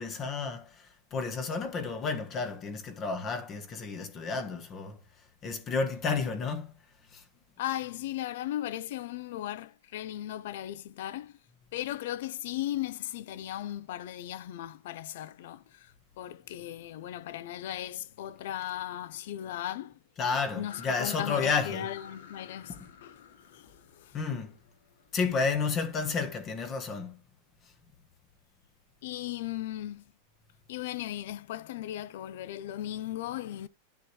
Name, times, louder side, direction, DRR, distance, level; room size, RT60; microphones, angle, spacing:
voice 1, 0.0-5.0 5.4-6.7 7.1-7.2 20.2-21.9 22.7-22.8 24.1-24.5 25.1-27.2, left 4 dB, 25° left, 1.3 m, -31 dB
voice 2, 7.6-11.4 11.7-20.0 20.5-22.8 23.0-23.2 23.5-24.1 29.0-30.0 30.7-33.7, left 13 dB, 60° left, 0.7 m, -37 dB
sound 1, 20.7-25.2, left 6 dB, 80° left, 2.5 m, -50 dB
10.0 x 7.4 x 3.2 m
supercardioid pair, 165°, 0 cm